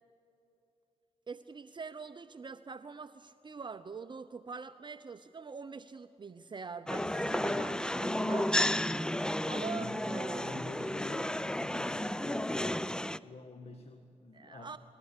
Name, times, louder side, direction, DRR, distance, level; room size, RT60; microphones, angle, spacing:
voice 1, 1.3-8.5 9.5-10.6 14.3-14.8, right 5 dB, 40° right, 10 dB, 0.7 m, -44 dB
sound 1, 6.9-13.2, left 1 dB, 5° left, 0.6 m, -32 dB
voice 2, 9.4-10.1 10.4-12.8 13.2-14.8, left 3 dB, 55° left, 5 dB, 1.8 m, -47 dB
21.0 x 15.5 x 9.9 m, 2.8 s
cardioid pair, 60°, 12 cm